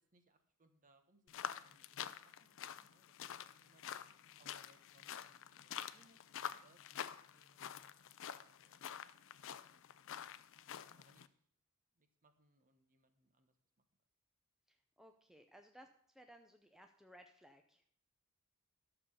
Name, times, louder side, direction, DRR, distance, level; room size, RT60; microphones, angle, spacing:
voice 1, 0.1-3.9 4.4-9.0 9.5-9.8 10.1-10.4 10.7-11.3 11.9-13.5, right 2 dB, 35° right, 7 dB, 1.2 m, -72 dB
sound 1, 1.3-11.3, left 9 dB, 60° left, 0.5 m, -48 dB
voice 2, 14.7-17.8, equal, ahead, 4 dB, 0.6 m, -61 dB
12.5 x 6.9 x 5.6 m, 0.63 s
head